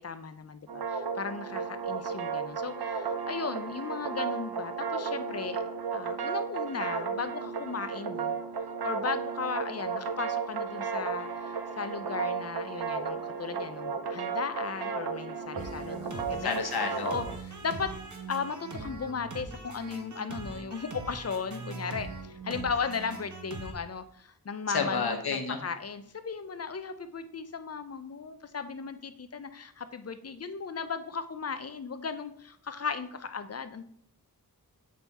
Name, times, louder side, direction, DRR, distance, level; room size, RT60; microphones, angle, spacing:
voice 1, 0.0-8.4 8.8-16.6 17.0-17.9 18.3-33.8, left 5 dB, 45° left, 10 dB, 0.5 m, -36 dB
sound 1, 0.7-17.4, right 6 dB, 85° right, 0.7 m, -34 dB
sound 2, 15.6-23.7, right 3 dB, 50° right, 0.9 m, -42 dB
voice 2, 16.4-17.1 24.7-25.6, left 5 dB, 85° left, 4 dB, 1.0 m, -30 dB
7.5 x 3.5 x 4.1 m, 0.69 s
wide cardioid pair, 85°, 37 cm